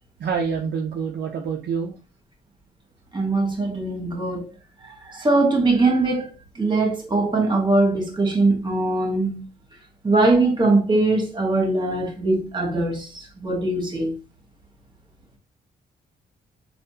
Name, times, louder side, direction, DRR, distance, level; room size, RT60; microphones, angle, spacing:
voice 1, 0.2-1.9, right 6 dB, 55° right, 0.6 m, -26 dB
voice 2, 3.1-4.5 4.8-9.4 10.0-14.1, right 2 dB, 25° right, 1.4 m, -21 dB
3.4 x 2.5 x 2.7 m
supercardioid pair, 55°, 20 cm